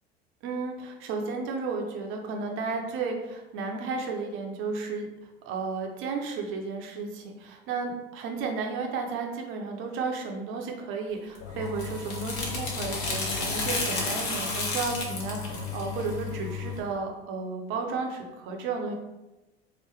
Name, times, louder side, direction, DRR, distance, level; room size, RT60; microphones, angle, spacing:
voice 1, 0.4-5.1 5.5-18.9, right 4 dB, 45° right, 2 dB, 0.7 m, -33 dB
sound 1, 11.4-16.8, left 3 dB, 50° left, 0.9 m, -32 dB
3.8 x 2.1 x 3.2 m, 1.0 s
figure-of-eight pair, 70°, 30 cm